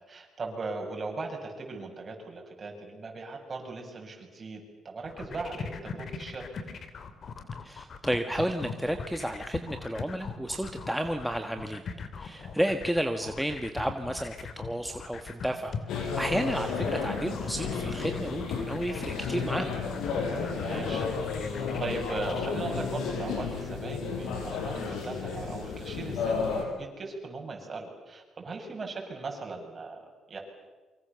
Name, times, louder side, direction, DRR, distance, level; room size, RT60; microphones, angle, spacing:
voice 1, 0.1-6.5 20.5-21.1 21.4-30.4, right 3 dB, 35° right, 2 dB, 7.0 m, -38 dB
sound 1, 5.0-22.5, left 5 dB, 55° left, 2.8 m, -40 dB
voice 2, 7.6-11.8 12.2-19.7, equal, ahead, 5 dB, 1.5 m, -32 dB
sound 2, 15.9-26.6, left 5 dB, 85° left, 5.5 m, -32 dB
28.5 x 24.5 x 7.0 m, 1.3 s
cardioid pair, 90°, 0 cm